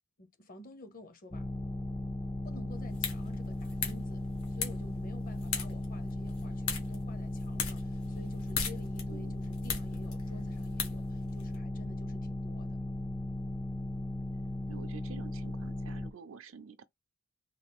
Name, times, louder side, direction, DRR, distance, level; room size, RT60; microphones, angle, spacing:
voice 1, 0.2-1.5 2.4-12.8, left 1 dB, 40° left, 0.7 m, -51 dB
sound 1, 1.3-16.1, left 1 dB, 15° left, 0.3 m, -37 dB
sound 2, 2.7-11.6, left 6 dB, 80° left, 1.3 m, -40 dB
voice 2, 14.7-16.8, right 6 dB, 65° right, 0.5 m, -49 dB
3.8 x 2.3 x 3.5 m
head